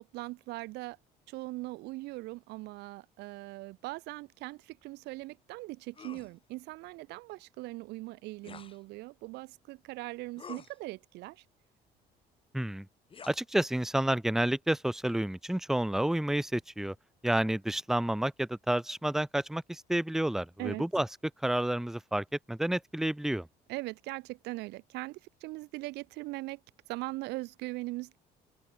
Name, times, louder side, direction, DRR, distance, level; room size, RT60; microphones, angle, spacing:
voice 1, 0.1-1.0 1.3-11.4 20.6-20.9 23.7-26.6 26.9-28.2, right 21 dB, 85° right, 0.7 m, -40 dB
sound 1, 5.9-6.3 8.4-8.8 10.4-10.8 13.1-13.4, left 6 dB, 30° left, 1.6 m, -48 dB
voice 2, 12.5-12.9 13.3-16.9 17.2-21.1 21.4-23.5, right 1 dB, ahead, 0.7 m, -30 dB
cardioid pair, 110°, 17 cm